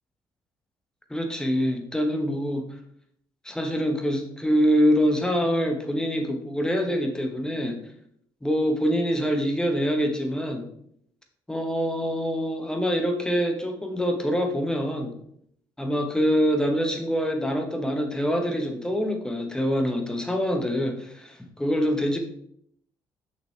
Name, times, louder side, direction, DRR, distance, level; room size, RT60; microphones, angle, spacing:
voice 1, 1.1-2.6 3.4-7.8 8.4-10.6 11.5-15.1 15.8-22.2, equal, 10° left, 4 dB, 1.2 m, -25 dB
6.2 x 6.0 x 3.4 m, 0.70 s
cardioid pair, 95°, 9 cm